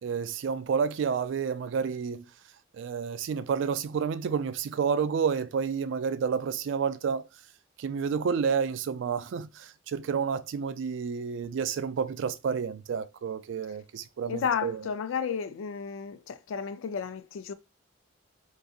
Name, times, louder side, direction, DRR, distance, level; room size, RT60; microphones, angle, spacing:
voice 1, 0.0-2.3 2.7-7.3 7.8-14.8, right 6 dB, 70° right, 0.3 m, -30 dB
voice 2, 14.3-17.5, left 7 dB, 90° left, 0.3 m, -32 dB
3.7 x 2.6 x 2.3 m
head